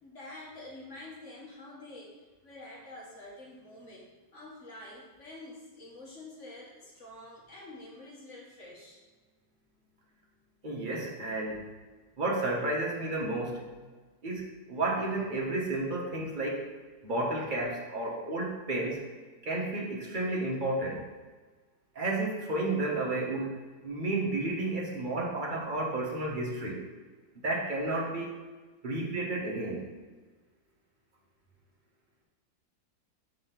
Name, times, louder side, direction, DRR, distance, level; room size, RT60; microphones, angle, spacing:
voice 1, 0.0-2.1 2.4-9.0, left 2 dB, 45° left, -4 dB, 1.8 m, -47 dB
voice 2, 10.6-11.6 12.2-13.6 14.2-16.7 17.0-19.0 19.4-21.0 21.9-26.8 27.4-28.3 28.8-29.8, right 2 dB, 30° right, -3 dB, 1.2 m, -32 dB
5.4 x 4.0 x 5.5 m, 1.3 s
omnidirectional pair, 1.9 m